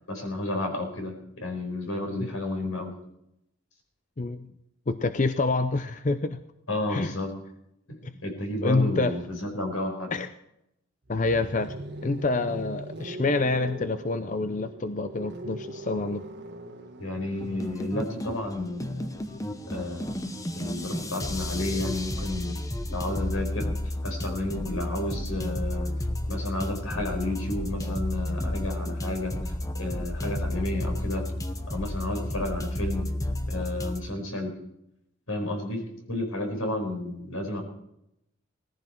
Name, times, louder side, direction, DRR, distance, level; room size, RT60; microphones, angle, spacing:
voice 1, 0.1-2.9 6.7-7.3 7.9-10.1 17.0-19.2 19.7-20.2 20.6-22.6 22.9-23.8 24.0-25.9 26.3-31.2 31.7-33.1 33.5-34.6 35.3-37.6, left 1 dB, 90° left, 3 dB, 4.8 m, -32 dB
voice 2, 4.2-4.5 4.9-6.4 6.9-7.1 8.0-8.1 8.6-9.1 10.1-10.3 11.1-11.7 12.0-16.2, left 3 dB, 35° left, 10 dB, 0.6 m, -27 dB
sound 1, 11.0-23.0 24.3-27.9, right 1 dB, 55° right, 1.7 m, -43 dB
sound 2, 17.4-34.0, left 1 dB, 15° left, 0.9 m, -32 dB
18.5 x 14.5 x 4.5 m, 0.81 s
head